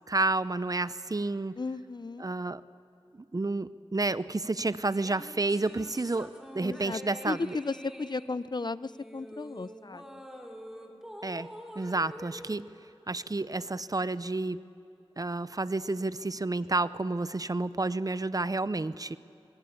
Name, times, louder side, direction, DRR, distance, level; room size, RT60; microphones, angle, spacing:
voice 1, 0.1-1.5 2.2-2.6 3.3-7.6 11.2-11.5 11.8-12.6 13.1-14.6 15.2-19.2, right 2 dB, 40° right, 16 dB, 0.6 m, -30 dB
voice 2, 1.6-2.3 6.6-10.2, left 3 dB, 45° left, 17 dB, 0.5 m, -35 dB
sound 1, 4.9-13.5, equal, 5° right, 2.6 m, -47 dB
22.5 x 21.0 x 8.6 m, 2.8 s
wide cardioid pair, 45°, 10 cm